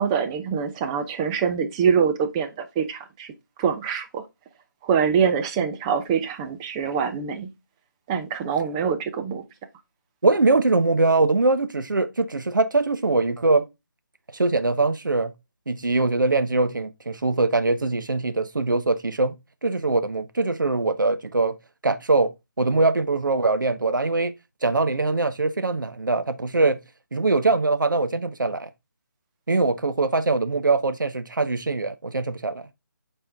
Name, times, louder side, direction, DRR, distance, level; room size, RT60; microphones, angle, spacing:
voice 1, 0.0-3.3 3.6-4.2 4.8-7.5 8.1-9.4, right 7 dB, 20° right, 0.8 m, -24 dB
voice 2, 10.2-13.7 14.3-15.3 15.7-19.3 19.6-21.6 21.8-22.3 22.6-24.3 24.6-26.8 27.1-28.7 29.5-32.6, right 3 dB, 80° right, 0.8 m, -22 dB
7.7 x 4.4 x 3.5 m
figure-of-eight pair, 150°, 10 cm